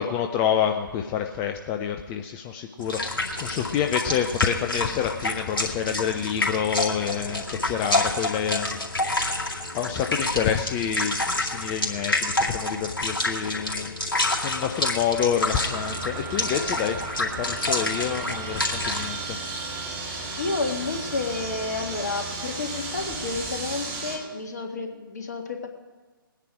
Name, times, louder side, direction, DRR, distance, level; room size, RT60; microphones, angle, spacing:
voice 1, 0.0-8.8 9.3-19.2, left 8 dB, 15° left, 5 dB, 0.4 m, -28 dB
sound 1, 2.8-19.1, left 2 dB, 65° left, 2.3 m, -28 dB
sound 2, 15.6-24.2, right 3 dB, 20° right, 2.4 m, -34 dB
voice 2, 20.4-25.7, left 3 dB, 45° left, 3 dB, 1.8 m, -30 dB
20.0 x 9.8 x 4.9 m, 1.4 s
figure-of-eight pair, 135°, 12 cm